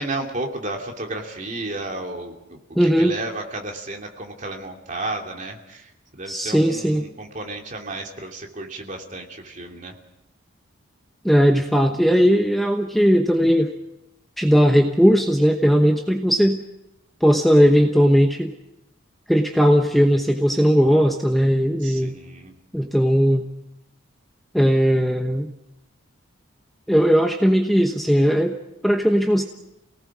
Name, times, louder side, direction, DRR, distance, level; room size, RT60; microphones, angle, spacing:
voice 1, 0.0-9.9 21.8-22.5, right 2 dB, 35° right, 1 dB, 2.9 m, -33 dB
voice 2, 2.7-3.2 6.3-7.0 11.2-13.7 14.4-16.6 17.2-18.5 19.3-22.1 22.7-23.5 24.5-25.5 26.9-28.5 28.8-29.4, equal, ahead, 3 dB, 1.0 m, -18 dB
28.5 x 18.5 x 6.2 m, 0.89 s
head